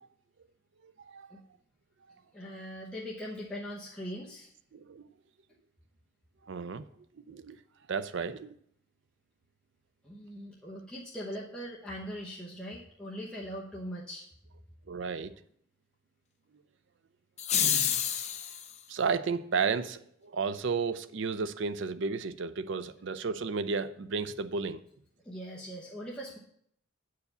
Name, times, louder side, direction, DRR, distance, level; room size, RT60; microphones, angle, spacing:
voice 1, 2.3-4.5 10.0-14.3 25.2-26.4, equal, 5° left, -6 dB, 0.9 m, -41 dB
voice 2, 4.7-5.0 6.5-6.8 7.2-7.6 7.9-8.5 14.9-15.3 18.9-24.8, right 5 dB, 60° right, 13 dB, 0.5 m, -33 dB
sound 1, 17.4-18.7, left 9 dB, 30° left, 0.5 m, -28 dB
8.2 x 4.8 x 6.6 m, 0.68 s
head